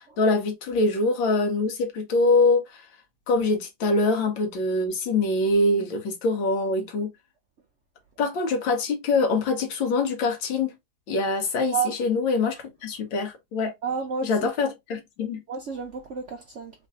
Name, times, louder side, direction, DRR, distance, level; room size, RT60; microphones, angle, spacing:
voice 1, 0.0-2.8 3.3-7.1 8.2-10.7 11.1-13.7 14.2-15.4, left 3 dB, 85° left, 1.8 m, -24 dB
voice 2, 13.8-14.5 15.5-16.7, right 6 dB, 70° right, 0.7 m, -31 dB
3.8 x 2.6 x 3.4 m
omnidirectional pair, 2.0 m